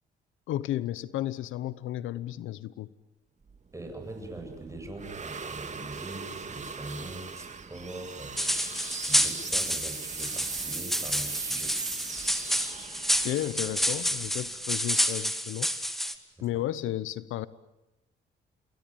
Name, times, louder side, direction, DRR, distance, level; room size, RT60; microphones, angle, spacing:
voice 1, 0.5-2.9 13.2-15.7 16.4-17.5, left 13 dB, 85° left, 17 dB, 1.0 m, -33 dB
sound 1, 3.5-14.7, right 5 dB, 35° right, 2.5 m, -39 dB
voice 2, 3.7-8.5 9.1-11.8 16.4-16.5, right 2 dB, 15° right, 4 dB, 7.9 m, -42 dB
sound 2, 8.4-16.1, equal, ahead, 2.3 m, -29 dB
27.5 x 21.5 x 9.1 m, 0.97 s
cardioid pair, 90°, 20 cm